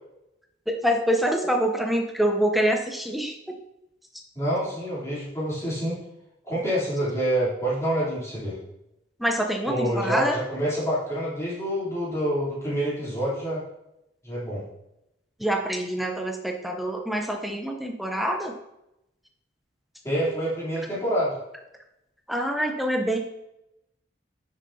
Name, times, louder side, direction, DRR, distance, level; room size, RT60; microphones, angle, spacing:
voice 1, 0.7-3.6 9.2-10.4 15.4-18.5 22.3-23.2, equal, ahead, 2 dB, 0.6 m, -25 dB
voice 2, 4.3-6.0 6.4-8.6 9.7-13.6 14.2-14.6 20.0-21.3, right 1 dB, 15° left, -10 dB, 3.1 m, -27 dB
10.0 x 6.4 x 2.7 m, 0.85 s
head